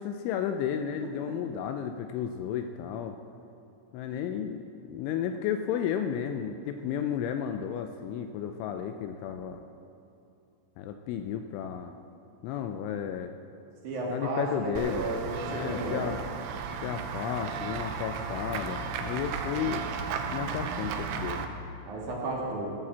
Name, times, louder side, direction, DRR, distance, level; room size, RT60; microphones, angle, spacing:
voice 1, 0.0-3.2 3.9-9.6 10.8-11.9 12.4-13.3 14.1-15.1 15.5-16.2 16.8-19.9 20.3-21.5, left 8 dB, 85° left, 7 dB, 2.8 m, -33 dB
voice 2, 13.8-16.1 21.9-22.7, right 2 dB, 50° right, -3 dB, 2.7 m, -33 dB
Run / Walk footsteps / Bell, 14.8-21.5, right 6 dB, 80° right, 2.6 m, -35 dB
16.5 x 7.5 x 7.3 m, 2.7 s
omnidirectional pair, 5.8 m